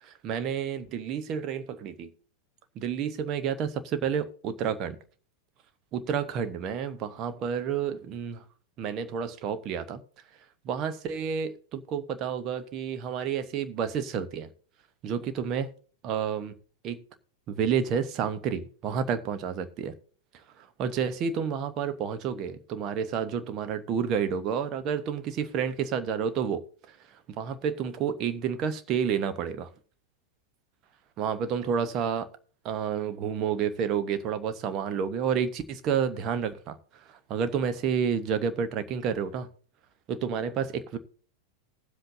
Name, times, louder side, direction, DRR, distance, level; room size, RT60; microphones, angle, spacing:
voice 1, 0.0-2.1 2.7-5.0 5.9-8.4 8.8-10.0 10.6-14.5 15.0-15.7 16.0-16.5 16.8-17.0 17.5-19.9 20.6-27.0 27.3-29.7 31.2-32.3 32.6-39.5 40.1-41.0, right 7 dB, 35° right, 1.0 m, -30 dB
19.5 x 7.8 x 2.7 m
figure-of-eight pair, 90°, 0 cm